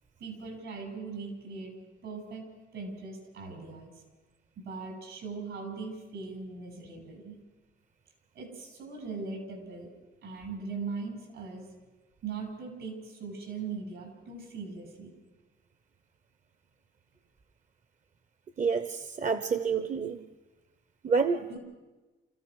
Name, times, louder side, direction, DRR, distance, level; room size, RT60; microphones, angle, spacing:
voice 1, 0.2-2.5 2.7-3.9 4.6-7.3 8.3-9.9 10.2-11.7 12.2-15.1 21.5-21.6, right 4 dB, 75° right, 3 dB, 7.3 m, -40 dB
voice 2, 18.6-20.2 21.0-21.4, right 5 dB, 40° right, 11 dB, 1.0 m, -28 dB
29.0 x 15.0 x 6.4 m, 1.2 s
cardioid pair, 90°, 20 cm